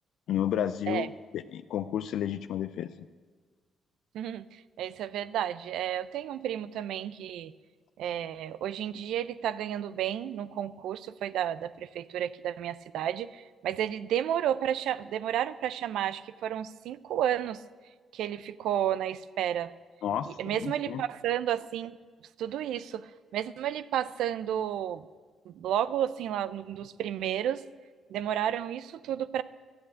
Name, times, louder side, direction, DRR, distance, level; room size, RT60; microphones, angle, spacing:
voice 1, 0.3-2.9 20.0-21.0, left 10 dB, 75° left, 12 dB, 0.4 m, -32 dB
voice 2, 4.1-7.5 8.0-17.6 18.1-19.7 20.4-22.0 22.4-25.0 25.5-27.6 28.1-29.4, right 10 dB, 80° right, 16 dB, 0.5 m, -32 dB
13.0 x 8.7 x 8.1 m, 1.5 s
cardioid pair, 90°, 0 cm